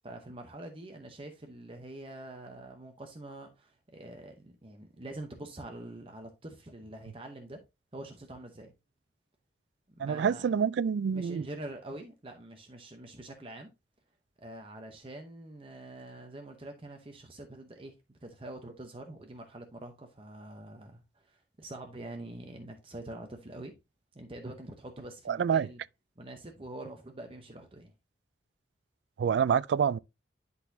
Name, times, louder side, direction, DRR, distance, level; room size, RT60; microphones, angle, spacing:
voice 1, 0.0-7.6 7.9-8.7 10.0-10.5 11.1-13.7 14.4-23.8 24.1-25.8 26.2-27.9, right 1 dB, 30° right, 0.8 m, -45 dB
voice 2, 10.0-11.5 25.3-25.7 29.2-30.0, right 7 dB, 80° right, 0.3 m, -27 dB
10.5 x 4.0 x 2.7 m
head